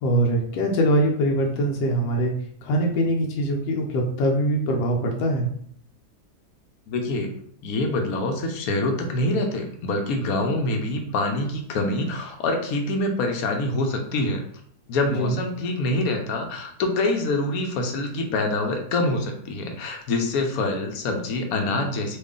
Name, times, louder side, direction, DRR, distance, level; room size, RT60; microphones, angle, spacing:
voice 1, 0.0-2.3 2.6-5.5 15.0-15.4, right 1 dB, 90° left, 1 dB, 1.3 m, -23 dB
voice 2, 6.9-7.3 7.6-14.4 14.9-22.2, left 2 dB, 70° left, 3 dB, 0.9 m, -25 dB
3.0 x 2.4 x 3.6 m, 0.63 s
omnidirectional pair, 1.9 m